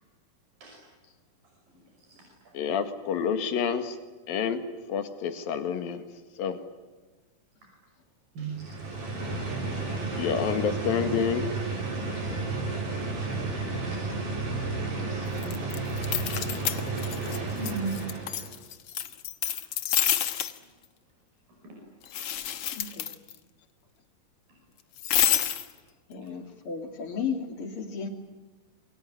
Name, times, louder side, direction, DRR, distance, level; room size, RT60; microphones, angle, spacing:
voice 1, 2.0-2.5 7.6-7.7 8.4-8.7 12.1-12.3 12.6-12.8 13.8-14.0 14.6-15.3 15.6-16.7 17.5-18.1 19.4-19.7 21.6-21.8 26.2-26.3, right 4 dB, 85° right, -1 dB, 7.3 m, -40 dB
voice 2, 2.5-4.0 4.3-4.6 4.9-6.0 6.4-6.6 10.2-11.5, left 7 dB, 85° left, 9 dB, 3.6 m, -28 dB
sound 1, 8.5-18.5, right 3 dB, 60° right, 7.3 m, -32 dB
sound 2, 15.4-17.4 17.6-20.6 22.0-23.4 25.0-25.7, left 10 dB, 60° left, 1.7 m, -29 dB
voice 3, 22.7-23.1 26.1-28.1, left 6 dB, 40° left, 5 dB, 3.3 m, -34 dB
27.5 x 23.0 x 9.2 m, 1.3 s
omnidirectional pair, 4.0 m